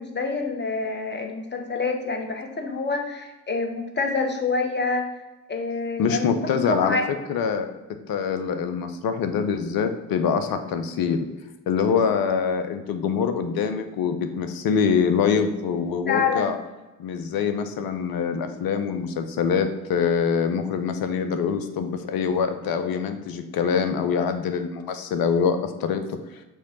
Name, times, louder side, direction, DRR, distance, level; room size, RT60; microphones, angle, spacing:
voice 1, 0.0-5.1 5.5-7.1 11.9-12.1 16.1-16.5, left 4 dB, 25° left, 3 dB, 1.3 m, -27 dB
voice 2, 6.0-7.0 7.3-7.7 8.1-11.2 11.7-16.6 17.0-26.2, left 6 dB, 55° left, 8 dB, 0.9 m, -24 dB
6.7 x 3.2 x 5.5 m, 1.1 s
figure-of-eight pair, 45°, 42 cm